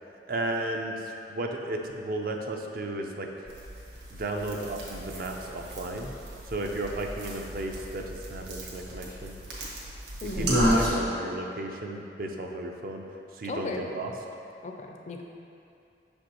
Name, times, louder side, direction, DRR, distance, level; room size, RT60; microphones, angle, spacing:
voice 1, 0.3-3.3 4.1-6.1 6.5-9.3 10.4-13.0 13.3-14.1, right 2 dB, 55° right, 2 dB, 0.5 m, -34 dB
sound 1, 3.5-10.9, equal, 70° right, 1.3 m, -32 dB
voice 2, 10.2-10.6 13.4-13.9 14.6-15.2, left 3 dB, 40° left, 2 dB, 0.4 m, -36 dB
6.1 x 5.2 x 3.0 m, 2.7 s
head